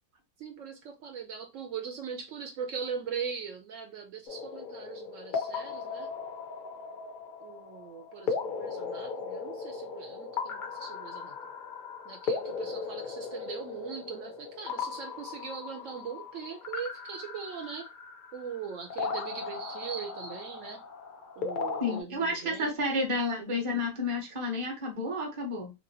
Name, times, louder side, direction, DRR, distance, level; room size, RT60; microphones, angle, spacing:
voice 1, 0.4-6.1 7.4-11.3 12.1-17.9 18.3-20.8 21.4-22.8, right 6 dB, 70° right, 0.9 m, -40 dB
sound 1, 4.3-22.0, left 5 dB, 70° left, 0.4 m, -37 dB
voice 2, 21.8-25.7, left 2 dB, 25° right, 0.8 m, -31 dB
2.8 x 2.8 x 2.7 m
omnidirectional pair, 1.5 m